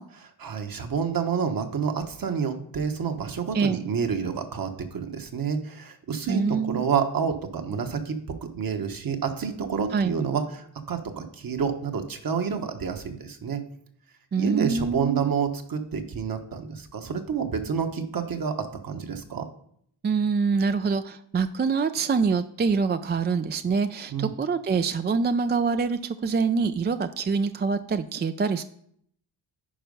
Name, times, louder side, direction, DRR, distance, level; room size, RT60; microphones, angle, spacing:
voice 1, 0.1-13.6 14.4-19.5 24.1-24.3, right 6 dB, 50° right, 6 dB, 1.2 m, -29 dB
voice 2, 6.3-6.8 9.9-10.2 14.3-15.3 20.0-28.6, right 5 dB, 25° right, 10 dB, 0.3 m, -25 dB
10.5 x 4.5 x 5.3 m, 0.67 s
cardioid pair, 80°, 45 cm